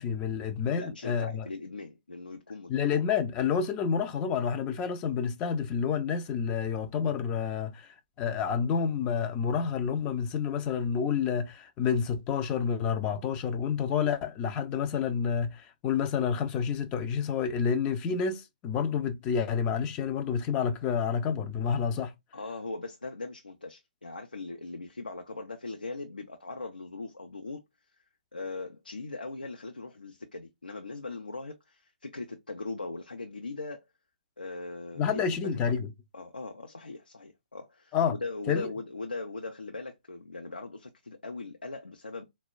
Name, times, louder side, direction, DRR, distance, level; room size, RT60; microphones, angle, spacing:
voice 1, 0.0-1.5 2.7-22.1 35.0-35.9 37.9-38.2 38.5-38.7, left 7 dB, 20° left, 0.3 m, -29 dB
voice 2, 0.8-2.8 14.6-14.7 22.3-27.6 28.3-33.9 34.4-35.7 36.1-42.2, left 3 dB, 80° left, 0.6 m, -40 dB
4.2 x 2.1 x 2.2 m
figure-of-eight pair, 130°, 5 cm